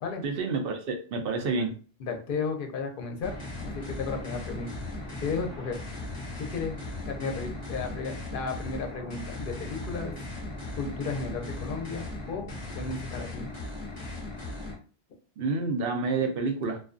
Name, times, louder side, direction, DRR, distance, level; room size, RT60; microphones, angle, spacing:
voice 1, 0.2-1.7 15.4-16.8, right 4 dB, 65° right, 4 dB, 0.7 m, -29 dB
voice 2, 2.0-3.3 3.6-4.8 5.2-5.8 6.4-6.7 7.1-10.2 10.8-13.6, left 4 dB, 60° left, 4 dB, 0.7 m, -34 dB
sound 1, 3.2-14.8, left 2 dB, 30° left, 0.9 m, -38 dB
2.4 x 2.2 x 2.4 m, 0.39 s
omnidirectional pair, 1.1 m